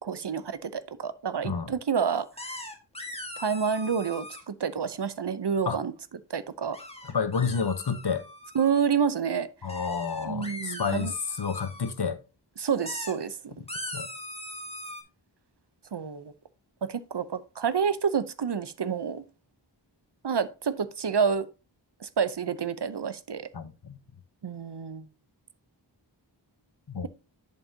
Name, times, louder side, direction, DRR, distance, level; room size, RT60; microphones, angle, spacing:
voice 1, 0.0-2.3 3.4-5.9 6.3-6.8 8.5-9.5 10.2-11.1 12.6-13.5 15.9-16.3 16.8-19.2 20.2-21.5 22.0-23.5 24.4-25.0, right 6 dB, 65° right, 0.7 m, -28 dB
sound 1, 2.4-4.4 6.7-8.8 9.7-11.9 12.7-13.1 13.7-15.0, left 1 dB, 15° left, 1.6 m, -40 dB
voice 2, 7.0-8.2 9.6-11.1 11.4-12.2 13.9-14.1 23.5-24.0 26.9-27.1, left 5 dB, 60° left, 0.9 m, -30 dB
11.0 x 5.4 x 2.8 m
wide cardioid pair, 50°, 45 cm